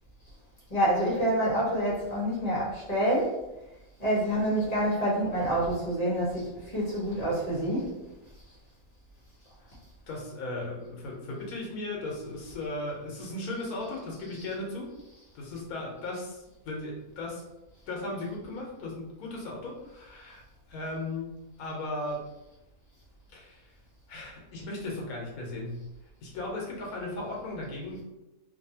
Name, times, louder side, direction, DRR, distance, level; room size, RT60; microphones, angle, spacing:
voice 1, 0.7-3.3 4.0-8.0 14.2-14.3, right 1 dB, 30° left, -7 dB, 0.9 m, -27 dB
voice 2, 10.1-14.9 15.3-17.4 17.9-20.4 20.7-21.3 21.6-22.2 23.3-23.6 24.1-25.8 26.2-28.0, left 2 dB, 85° left, -2 dB, 1.3 m, -36 dB
2.7 x 2.6 x 2.7 m, 0.98 s
omnidirectional pair, 1.5 m